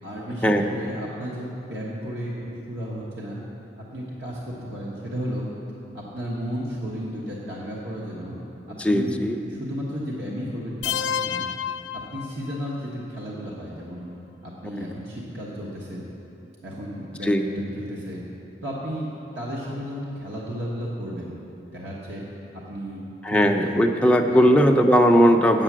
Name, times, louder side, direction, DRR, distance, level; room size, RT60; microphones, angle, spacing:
voice 1, 0.0-3.4 3.8-5.5 5.9-8.4 8.7-9.1 9.5-11.5 11.9-14.2 14.4-16.0 16.6-18.2 18.6-21.3 21.7-22.2 22.5-23.8 24.3-24.4, equal, 75° right, -6 dB, 1.3 m, -33 dB
voice 2, 8.7-9.4 17.2-17.4 23.2-25.6, equal, 5° left, 2 dB, 0.5 m, -18 dB
sound 1, 10.8-12.8, left 9 dB, 80° left, 0.3 m, -30 dB
8.2 x 7.4 x 7.4 m, 2.9 s
head